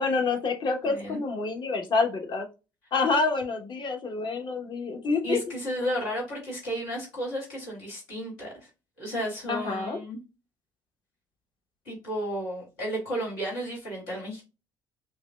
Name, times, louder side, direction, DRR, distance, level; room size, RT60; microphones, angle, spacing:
voice 1, 0.0-2.5 2.9-5.4 9.5-10.0, left 4 dB, 45° left, 5 dB, 1.0 m, -27 dB
voice 2, 0.8-1.2 5.2-8.7 9.0-10.2 11.9-14.4, equal, 80° left, -4 dB, 1.8 m, -33 dB
5.4 x 2.2 x 2.2 m, 0.29 s
hypercardioid pair, 55°, 11 cm